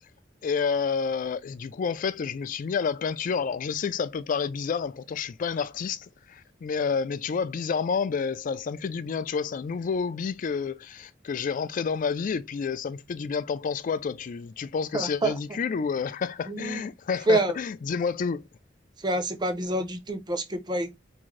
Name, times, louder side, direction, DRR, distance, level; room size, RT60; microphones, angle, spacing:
voice 1, 0.4-18.4, left 5 dB, 45° left, 0.3 m, -29 dB
voice 2, 14.9-15.4 16.5-16.9 17.3-17.6 19.0-20.9, right 1 dB, 25° right, 0.6 m, -27 dB
3.6 x 2.5 x 3.2 m
head